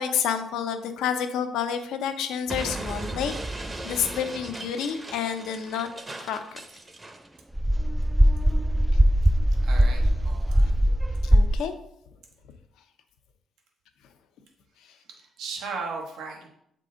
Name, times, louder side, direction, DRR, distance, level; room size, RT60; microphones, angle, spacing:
voice 1, 0.0-3.3 3.8-5.9 6.2-6.6 11.2-11.7, left 8 dB, 90° left, 7 dB, 0.6 m, -29 dB
Explosion, 2.5-7.3, right 2 dB, 25° right, 0.8 m, -37 dB
sound 1, 7.6-11.6, equal, 5° right, 0.3 m, -20 dB
voice 2, 9.6-10.8 15.2-16.5, right 4 dB, 85° right, 1 dB, 1.0 m, -36 dB
7.5 x 3.7 x 3.8 m, 0.74 s
cardioid pair, 90°, 0 cm